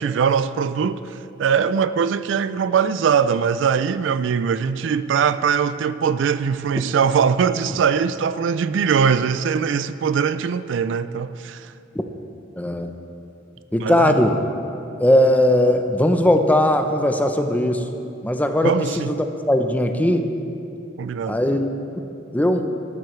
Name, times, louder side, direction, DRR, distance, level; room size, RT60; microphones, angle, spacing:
voice 1, 0.0-11.7 13.8-14.2 18.6-19.1 21.0-21.4, right 6 dB, 70° right, 0.3 m, -21 dB
voice 2, 12.6-12.9 13.7-14.4 15.0-17.9 18.2-19.1 19.5-20.3 21.3-21.7 22.3-22.7, left 1 dB, 10° left, 0.6 m, -18 dB
13.0 x 12.5 x 3.2 m
head